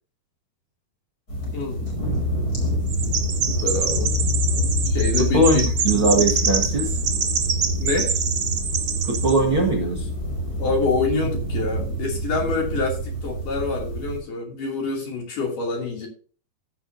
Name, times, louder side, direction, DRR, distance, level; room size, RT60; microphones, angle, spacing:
sound 1, 1.3-14.2, equal, 20° left, 5.1 m, -26 dB
voice 1, 1.5-1.9 3.5-4.1 4.9-5.6 6.0-6.1 7.8-8.2 10.6-16.1, left 4 dB, 55° left, 0 dB, 4.1 m, -26 dB
Chirp tweet, 2.9-9.4, right 6 dB, 60° right, 1.1 m, -26 dB
voice 2, 5.2-7.0 9.0-10.1, right 1 dB, 45° right, 2 dB, 1.9 m, -21 dB
16.5 x 7.4 x 2.7 m, 0.39 s
omnidirectional pair, 4.6 m